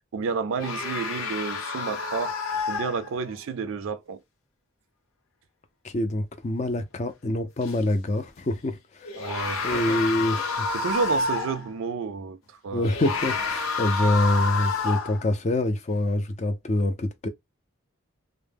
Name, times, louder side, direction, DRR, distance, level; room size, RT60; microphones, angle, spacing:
voice 1, 0.1-2.4 2.7-4.2 9.2-10.0 10.4-12.9, right 5 dB, 70° right, 0.3 m, -31 dB
sound 1, 0.6-3.4 7.6-7.7 9.0-11.7 12.8-15.3, left 4 dB, 85° left, 0.7 m, -29 dB
voice 2, 5.8-9.2 9.6-10.7 12.7-17.3, left 1 dB, 35° left, 0.4 m, -26 dB
2.1 x 2.0 x 3.3 m
head